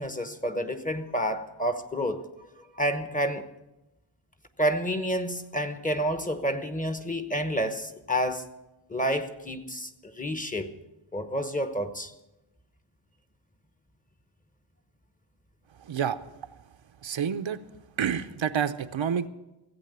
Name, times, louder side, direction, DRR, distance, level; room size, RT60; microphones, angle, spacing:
voice 1, 0.0-2.2 2.8-3.4 4.6-8.5 8.9-10.7 11.1-12.1, equal, 15° left, 1.0 m, -29 dB
voice 2, 15.8-16.2 17.0-17.6 18.0-19.3, right 8 dB, 70° right, 0.7 m, -28 dB
15.0 x 8.3 x 8.0 m
wide cardioid pair, 90°, 48 cm